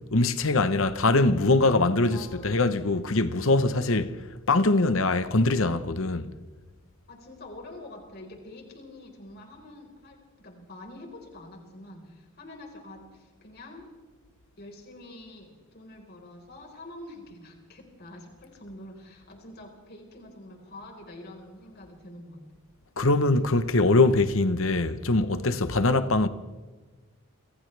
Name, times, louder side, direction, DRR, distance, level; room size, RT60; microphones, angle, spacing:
voice 1, 0.1-4.1 4.5-6.3 23.0-26.3, left 2 dB, 65° left, 1.0 m, -23 dB
voice 2, 2.1-2.6 7.1-13.9 14.6-22.4, left 1 dB, 45° left, 4.5 m, -46 dB
29.5 x 26.5 x 3.4 m
head